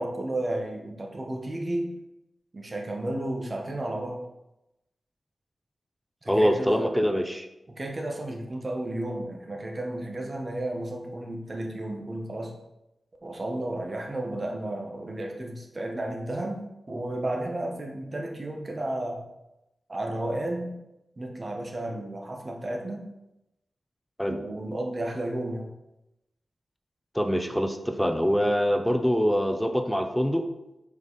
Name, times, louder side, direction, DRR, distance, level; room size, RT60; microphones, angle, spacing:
voice 1, 0.0-1.9 2.5-4.3 6.2-7.0 7.7-12.5 13.2-19.2 19.9-20.8 21.2-23.0 24.3-25.7, right 1 dB, 45° right, 1 dB, 1.2 m, -32 dB
voice 2, 6.3-7.5 24.2-24.4 27.1-30.5, equal, ahead, 6 dB, 0.6 m, -24 dB
5.1 x 4.9 x 4.1 m, 0.92 s
cardioid pair, 60°, 0 cm